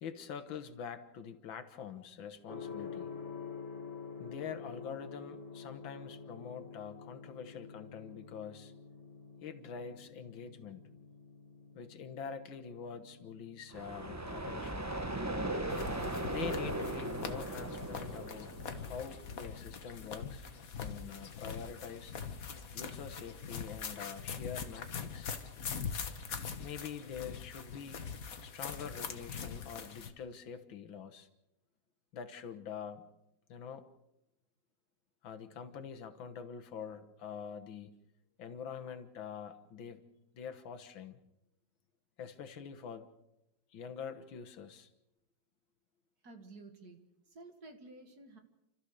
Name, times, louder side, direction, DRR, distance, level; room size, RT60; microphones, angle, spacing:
voice 1, 0.0-3.1 4.2-8.7 9.4-10.8 11.7-14.9 16.3-20.5 20.8-22.1 22.7-25.3 26.6-28.0 28.4-31.3 32.1-33.1 33.5-33.9 35.2-38.0 38.4-40.0 40.3-41.2 42.2-43.1 43.7-44.9, left 7 dB, 80° left, 8 dB, 2.0 m, -45 dB
Gong, 2.5-20.4, left 5 dB, 30° left, 2.1 m, -50 dB
sound 1, 13.7-19.5, right 1 dB, 15° right, 0.7 m, -38 dB
sound 2, 15.7-30.1, left 6 dB, 50° left, 1.6 m, -43 dB
voice 2, 46.2-47.0 47.3-48.4, right 2 dB, 55° right, 5 dB, 2.5 m, -52 dB
29.5 x 14.0 x 6.6 m, 0.90 s
omnidirectional pair, 2.1 m